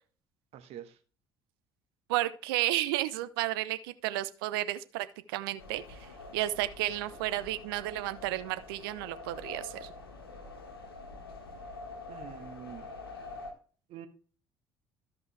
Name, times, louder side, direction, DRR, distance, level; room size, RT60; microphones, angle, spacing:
voice 1, 0.5-0.9 12.1-12.9 13.9-14.1, right 10 dB, 60° right, 8 dB, 1.5 m, -45 dB
voice 2, 2.1-5.8 6.3-9.9, right 15 dB, 75° right, 14 dB, 0.7 m, -32 dB
sound 1, 5.6-13.5, left 3 dB, 90° left, 1.4 m, -46 dB
13.5 x 5.4 x 3.3 m, 0.39 s
hypercardioid pair, 55°, 12 cm